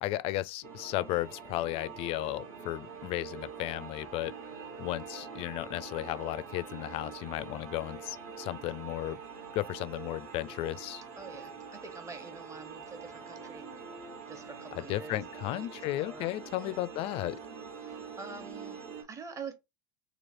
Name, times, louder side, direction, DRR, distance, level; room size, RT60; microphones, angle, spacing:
voice 1, 0.0-4.3 4.8-9.2 9.5-11.0 14.7-17.4, left 15 dB, 50° left, 0.4 m, -34 dB
sound 1, 0.6-19.0, right 5 dB, 65° right, 1.4 m, -45 dB
voice 2, 11.2-13.7 14.3-15.2 15.5-16.3 16.5-16.8 17.8-19.6, right 5 dB, 25° right, 1.1 m, -46 dB
3.1 x 2.4 x 4.2 m
hypercardioid pair, 80°, 12 cm